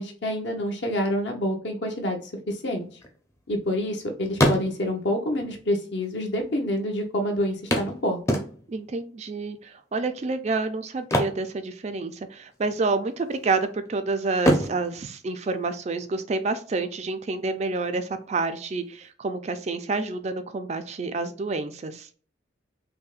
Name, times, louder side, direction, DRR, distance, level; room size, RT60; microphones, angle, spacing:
voice 1, 0.0-2.2 2.5-2.9 3.5-8.4, equal, 65° left, 2 dB, 0.9 m, -27 dB
sound 1, 2.7-4.0 4.3-5.1 6.0-6.1 6.4-6.5 7.7-8.9 10.9-12.3 12.5-12.8 13.3-13.9 14.4-16.1 18.1-18.2 18.6-18.7, equal, 15° left, 0.6 m, -27 dB
voice 2, 8.7-22.1, right 3 dB, 35° right, 9 dB, 0.3 m, -28 dB
5.3 x 2.1 x 2.4 m, 0.43 s
head